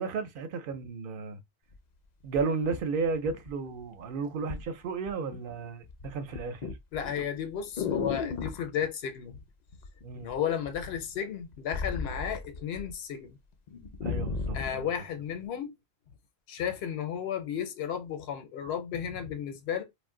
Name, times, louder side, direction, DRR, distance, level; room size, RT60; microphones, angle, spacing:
voice 1, 0.0-1.4 2.2-6.7 10.0-10.3 14.0-14.9, right 4 dB, 65° right, 0.7 m, -33 dB
sound 1, 1.7-1.8 2.4-3.8 4.5-4.7 5.1-5.5 5.8-8.7 9.8-10.3 10.6-12.9 13.3-13.4 13.7-14.8 15.5-15.6, left 5 dB, 55° left, 0.5 m, -35 dB
voice 2, 6.9-9.4 10.2-13.4 14.5-15.8 16.5-19.8, left 8 dB, 80° left, 0.9 m, -33 dB
2.5 x 2.1 x 3.6 m
omnidirectional pair, 1.1 m